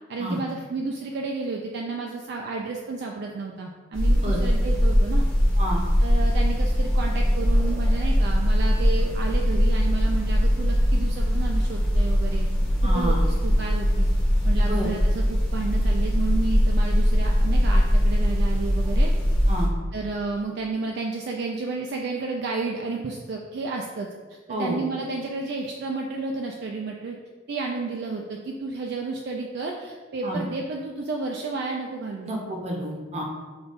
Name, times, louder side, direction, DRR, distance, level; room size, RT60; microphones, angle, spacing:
voice 1, 0.1-5.3 6.0-12.5 12.8-14.1 14.4-19.1 19.9-27.2 27.5-32.3, right 3 dB, 55° right, 0 dB, 0.3 m, -31 dB
sound 1, 3.9-19.7, equal, 5° left, 0.8 m, -21 dB
voice 2, 12.8-13.2 14.6-14.9 19.5-19.7 24.5-24.8 30.2-30.4 32.2-33.2, equal, 35° right, -1 dB, 0.7 m, -29 dB
5.1 x 2.3 x 4.0 m, 1.4 s
head